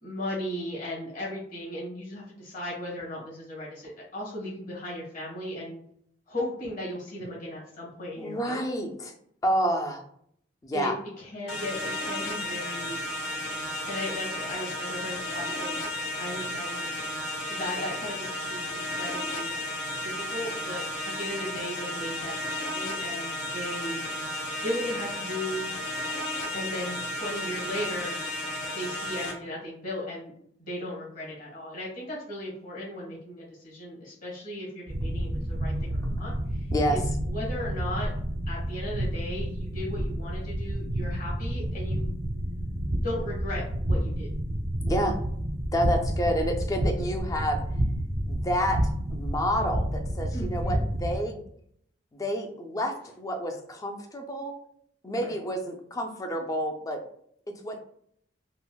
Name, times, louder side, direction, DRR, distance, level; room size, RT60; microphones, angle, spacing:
voice 1, 0.0-5.8 6.3-8.6 10.7-13.0 13.9-15.9 16.2-16.9 17.5-19.7 20.0-24.0 24.6-25.6 26.5-28.2 28.7-30.3 30.6-38.1 38.5-42.1 43.0-44.3 50.3-50.8 55.1-55.3, left 1 dB, 45° left, -5 dB, 1.3 m, -36 dB
voice 2, 8.2-9.1 9.4-10.0 10.6-11.0 36.7-37.1 44.9-45.2 45.7-47.6 48.3-51.4 52.1-54.6 55.0-57.0 57.6-57.8, equal, 20° left, 4 dB, 0.4 m, -29 dB
sound 1, 11.5-29.3, left 1 dB, 65° left, 0.7 m, -33 dB
sound 2, 34.9-51.2, right 1 dB, 55° right, 0.5 m, -30 dB
3.7 x 2.0 x 2.2 m, 0.66 s
head